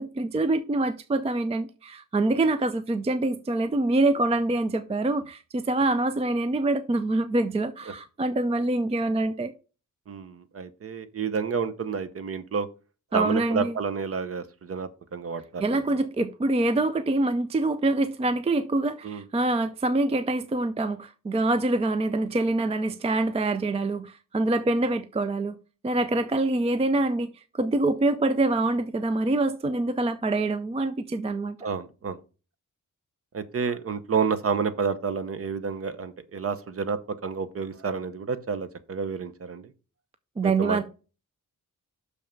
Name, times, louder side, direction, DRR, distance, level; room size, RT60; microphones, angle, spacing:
voice 1, 0.0-9.5 13.1-13.8 15.6-25.6 25.8-31.6 40.4-40.8, right 2 dB, 20° right, 0.4 m, -25 dB
voice 2, 10.1-12.7 13.1-15.8 19.0-19.2 31.6-32.2 33.3-39.7 40.4-40.8, right 5 dB, 45° right, 0.8 m, -30 dB
6.4 x 5.5 x 5.1 m
wide cardioid pair, 175°, 32 cm